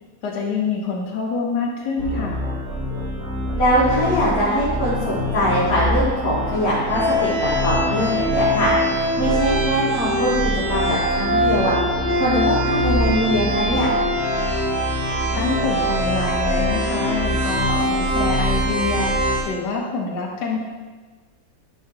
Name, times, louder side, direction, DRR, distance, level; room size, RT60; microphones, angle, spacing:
voice 1, 0.2-2.4 15.0-20.6, left 4 dB, 75° left, -2 dB, 1.5 m, -26 dB
sound 1, 2.0-19.4, equal, 65° right, 1.9 m, -23 dB
voice 2, 3.6-10.4 10.7-11.7 12.1-13.9, equal, 55° left, -9 dB, 2.1 m, -22 dB
10.0 x 5.8 x 2.9 m, 1.4 s
omnidirectional pair, 1.8 m